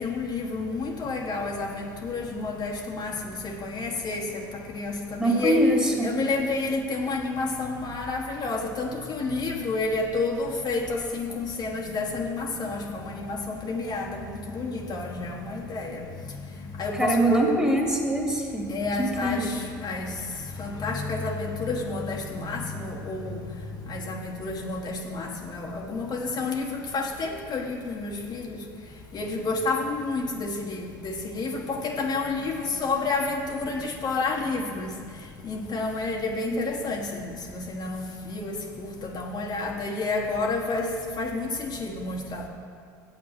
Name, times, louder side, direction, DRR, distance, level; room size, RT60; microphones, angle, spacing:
voice 1, 0.0-3.1 3.4-4.2 4.7-5.6 6.0-16.0 16.8-17.5 18.7-20.1 20.6-23.4 23.9-28.6 29.1-34.9 35.4-38.5 38.8-40.9 41.2-42.5, left 3 dB, 45° left, -1 dB, 1.5 m, -30 dB
voice 2, 5.2-6.1 16.9-18.7 19.0-19.5 36.5-36.6, right 1 dB, 10° right, 0 dB, 2.5 m, -23 dB
9.0 x 8.0 x 6.1 m, 2.2 s
hypercardioid pair, 70°, 10 cm